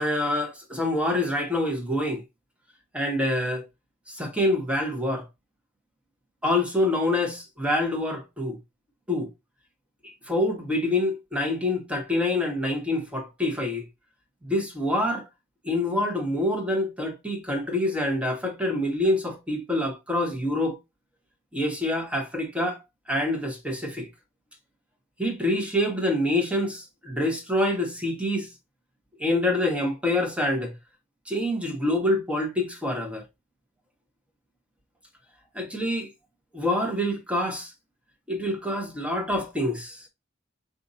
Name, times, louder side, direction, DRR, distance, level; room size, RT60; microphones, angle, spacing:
voice 1, 0.0-2.2 2.9-3.7 4.1-5.3 6.4-8.6 9.1-9.3 10.3-13.8 14.4-15.2 15.6-20.8 21.5-22.8 23.1-24.1 25.2-28.5 29.2-30.7 31.3-33.2 35.5-36.1 36.5-37.7 38.3-40.0, left 1 dB, 5° right, 0.9 m, -26 dB
5.0 x 2.6 x 2.6 m
head